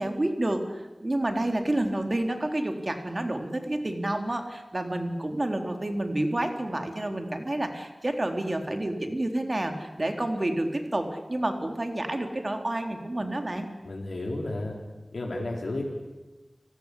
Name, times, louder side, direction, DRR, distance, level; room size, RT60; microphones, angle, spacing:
voice 1, 0.0-13.7, right 1 dB, 40° right, 5 dB, 3.7 m, -29 dB
voice 2, 13.8-14.7 15.1-15.8, left 2 dB, 90° left, -1 dB, 4.3 m, -32 dB
30.0 x 19.5 x 8.5 m, 1.1 s
wide cardioid pair, 55°, 0 cm